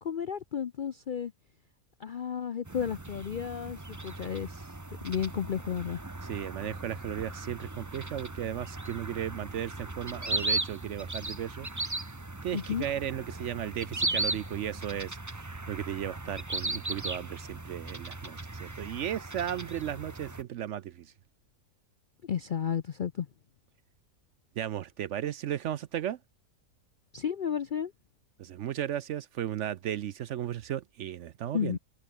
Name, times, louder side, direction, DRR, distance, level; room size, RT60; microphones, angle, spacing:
voice 1, 0.0-1.3 2.0-4.7 5.0-6.0 12.5-12.9 22.2-23.3 27.1-27.9 31.5-31.8, left 8 dB, 60° left, 0.5 m, -33 dB
sound 1, 2.6-20.4, right 2 dB, 15° right, 1.0 m, -37 dB
voice 2, 6.3-11.7 12.4-21.1 24.6-26.2 28.4-31.8, right 11 dB, 65° right, 0.8 m, -35 dB
omnidirectional pair, 1.6 m